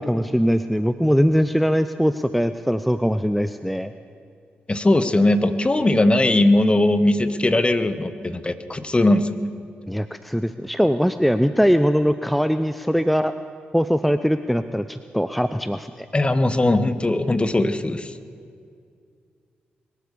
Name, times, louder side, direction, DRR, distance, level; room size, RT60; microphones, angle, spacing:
voice 1, 0.0-3.9 9.9-13.3 13.7-16.1, equal, ahead, 11 dB, 0.6 m, -21 dB
voice 2, 4.7-9.4 16.1-18.1, left 1 dB, 25° left, 11 dB, 1.1 m, -19 dB
22.5 x 8.3 x 6.9 m, 2.2 s
supercardioid pair, 45°, 4 cm